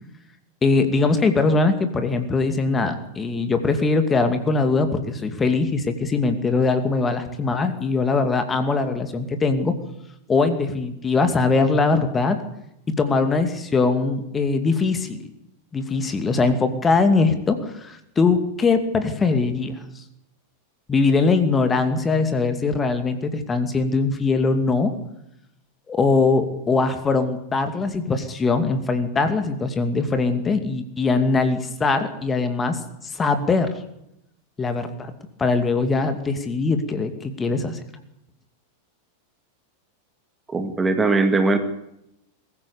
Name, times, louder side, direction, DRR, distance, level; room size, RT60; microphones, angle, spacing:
voice 1, 0.6-9.8 10.3-12.4 12.9-15.3 15.7-20.0 20.9-24.9 25.9-33.7 34.6-35.1 35.4-37.8, left 3 dB, 15° left, 8 dB, 2.5 m, -21 dB
voice 2, 40.5-41.6, right 3 dB, 15° right, 7 dB, 2.1 m, -20 dB
22.0 x 15.0 x 8.6 m, 0.80 s
figure-of-eight pair, 90°, 0 cm